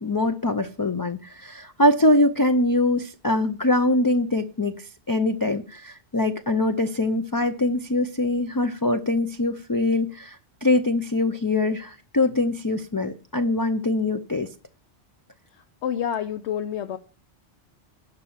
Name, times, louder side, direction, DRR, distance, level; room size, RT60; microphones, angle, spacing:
voice 1, 0.0-14.5, left 2 dB, 30° left, 0.4 m, -23 dB
voice 2, 15.5-17.0, left 9 dB, 75° left, 1.0 m, -29 dB
11.5 x 5.5 x 7.2 m
omnidirectional pair, 1.2 m